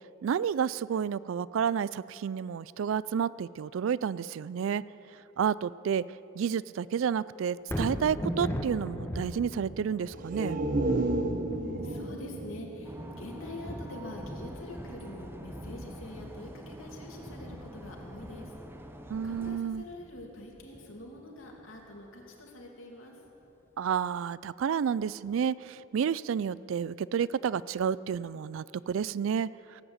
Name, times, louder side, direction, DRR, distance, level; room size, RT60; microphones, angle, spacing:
voice 1, 0.2-4.8 5.4-6.0 6.4-10.6 19.1-19.8 23.8-25.5 25.9-29.5, right 7 dB, 70° right, 19 dB, 0.3 m, -30 dB
Thunder, 7.6-21.8 22.3-22.4, equal, 10° left, 1.1 m, -40 dB
sound 1, 10.1-13.8 14.2-14.3, right 2 dB, 40° right, 1.1 m, -32 dB
voice 2, 11.5-18.5 19.2-23.2, left 1 dB, 70° left, 0 dB, 2.6 m, -45 dB
sound 2, 12.8-19.6, right 1 dB, 10° right, 0.7 m, -46 dB
17.5 x 8.9 x 8.0 m, 3.0 s
head